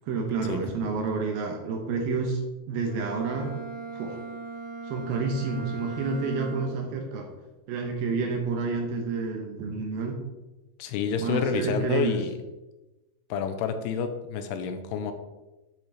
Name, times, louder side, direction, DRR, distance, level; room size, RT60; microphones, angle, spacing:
voice 1, 0.1-2.4 2.7-3.5 3.9-4.2 4.8-7.3 7.7-10.2 11.2-12.2, right 4 dB, 70° right, 2 dB, 2.6 m, -29 dB
Bowed string instrument, 2.8-7.0, right 4 dB, 50° right, 3.6 m, -38 dB
voice 2, 10.8-12.3 13.3-15.1, left 7 dB, 80° left, 8 dB, 2.6 m, -29 dB
10.5 x 6.4 x 3.3 m, 1.1 s
omnidirectional pair, 4.9 m